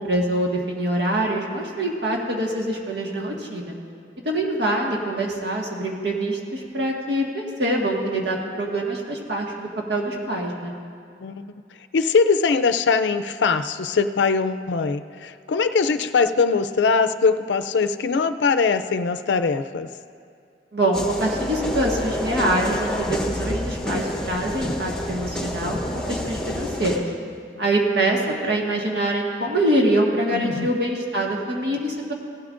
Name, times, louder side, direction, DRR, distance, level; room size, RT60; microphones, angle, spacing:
voice 1, 0.0-3.8 4.2-10.8 20.7-27.0 27.6-32.1, right 1 dB, 75° right, -1 dB, 1.7 m, -24 dB
voice 2, 11.9-19.9 30.3-30.7, left 5 dB, 85° left, 10 dB, 0.4 m, -21 dB
sound 1, 20.9-27.0, left 1 dB, 5° left, 1.0 m, -28 dB
17.0 x 12.0 x 2.6 m, 2.4 s
head